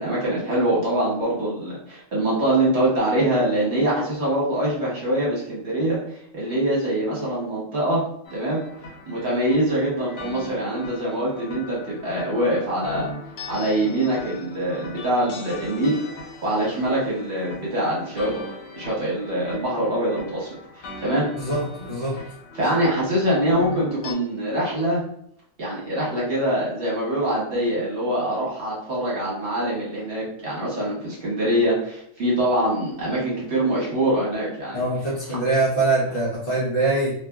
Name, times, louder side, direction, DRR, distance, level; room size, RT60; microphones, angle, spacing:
voice 1, 0.0-6.0 6.3-8.0 8.3-8.6 9.1-13.1 13.5-16.0 16.4-18.3 18.7-20.5 20.8-21.3 22.5-25.0 25.6-34.8, right 1 dB, 55° right, -6 dB, 1.2 m, -24 dB
sound 1, 8.2-24.1, left 2 dB, 75° left, 1.0 m, -40 dB
voice 2, 21.4-22.2 34.7-37.1, right 2 dB, 45° left, -6 dB, 1.0 m, -23 dB
2.9 x 2.4 x 2.2 m, 0.69 s
omnidirectional pair, 1.4 m